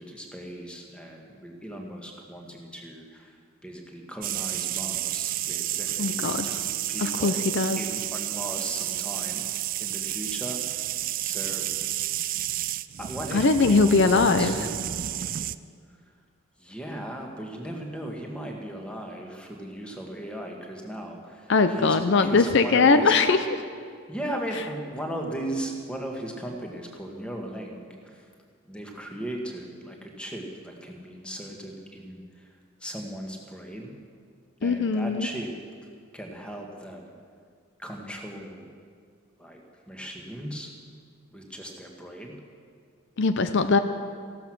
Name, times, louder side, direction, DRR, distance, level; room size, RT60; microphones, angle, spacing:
voice 1, 0.0-7.4 7.7-11.0 11.2-11.7 13.0-14.7 16.6-23.1 24.1-28.3 28.6-33.9 34.6-35.6 35.8-37.2 37.8-38.7 39.4-40.7 41.3-42.4, right 1 dB, 5° left, 1 dB, 1.6 m, -37 dB
sound 1, 4.2-15.6, right 13 dB, 45° right, 0.3 m, -31 dB
voice 2, 6.0-6.6 7.0-7.8 13.3-14.6 21.5-23.6 34.6-35.3 43.2-43.8, left 4 dB, 60° left, 10 dB, 0.6 m, -21 dB
15.0 x 12.5 x 6.1 m, 2.1 s
head